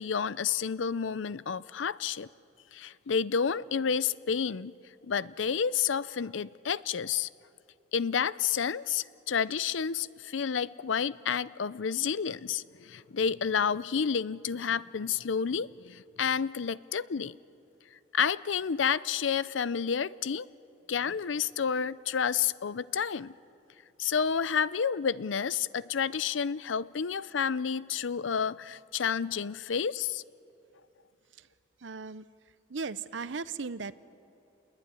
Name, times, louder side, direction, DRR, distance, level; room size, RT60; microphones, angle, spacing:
voice 1, 0.0-2.3 2.7-4.7 5.0-7.3 7.9-17.4 18.1-20.5 20.9-23.3 24.0-30.2, left 7 dB, 85° left, 0.6 m, -30 dB
voice 2, 31.8-32.3 32.7-33.9, right 4 dB, 75° right, 0.8 m, -36 dB
28.5 x 21.0 x 9.8 m
head